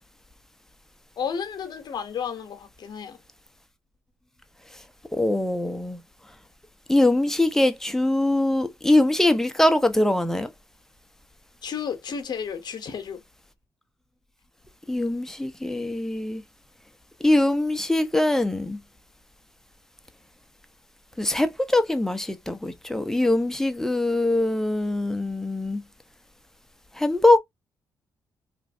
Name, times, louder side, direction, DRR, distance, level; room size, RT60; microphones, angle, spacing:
voice 1, 1.2-3.2 11.6-13.2, left 7 dB, 60° left, 0.9 m, -32 dB
voice 2, 5.1-6.0 6.9-10.5 14.9-16.4 17.2-18.8 21.2-25.8 27.0-27.4, left 1 dB, 5° left, 0.7 m, -22 dB
3.0 x 2.6 x 2.6 m
supercardioid pair, 60°, 8 cm